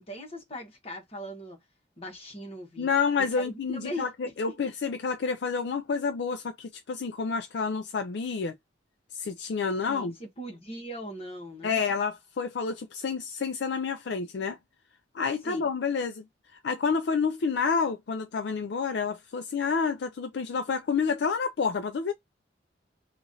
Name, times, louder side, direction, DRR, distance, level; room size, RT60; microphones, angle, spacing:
voice 1, 0.0-1.6 2.0-2.9 3.4-4.1 9.9-11.8 15.4-15.7, equal, 30° left, 1.2 m, -40 dB
voice 2, 2.8-8.6 9.1-10.1 11.6-14.6 15.1-16.2 16.5-22.1, left 5 dB, 60° left, 0.4 m, -29 dB
3.0 x 2.5 x 3.8 m
head